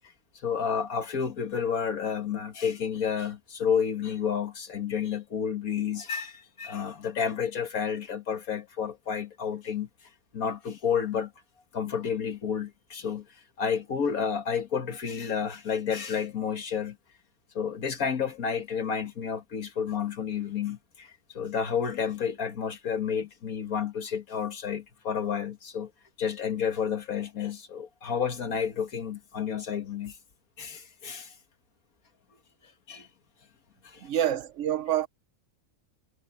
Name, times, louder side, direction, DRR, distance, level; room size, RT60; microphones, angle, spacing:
voice 1, 0.4-9.9 10.3-11.3 11.7-17.0 17.6-25.9 26.2-30.2 30.6-31.3 32.9-33.1 33.8-34.1, left 7 dB, 85° left, 2.1 m, -30 dB
voice 2, 34.0-35.1, right 11 dB, 65° right, 0.9 m, -27 dB
omnidirectional pair, 1.5 m